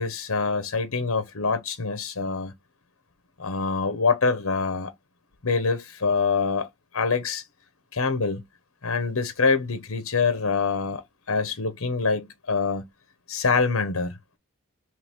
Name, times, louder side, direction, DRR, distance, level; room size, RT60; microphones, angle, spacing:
voice 1, 0.0-2.5 3.4-4.9 5.4-7.4 7.9-8.4 8.8-11.0 11.3-12.8 13.3-14.2, left 4 dB, 70° left, 1.0 m, -25 dB
4.7 x 3.2 x 3.6 m
head